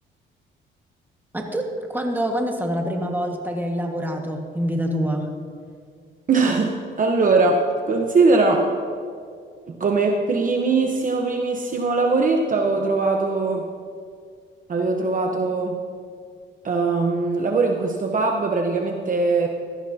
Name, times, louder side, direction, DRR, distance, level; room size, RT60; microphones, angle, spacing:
voice 1, 1.3-5.3, equal, 10° right, 2 dB, 1.7 m, -26 dB
voice 2, 6.3-8.7 9.7-13.7 14.7-15.8 16.6-19.5, right 3 dB, 40° right, 2 dB, 1.0 m, -21 dB
16.5 x 13.0 x 2.9 m, 2.1 s
cardioid pair, 90°, 20 cm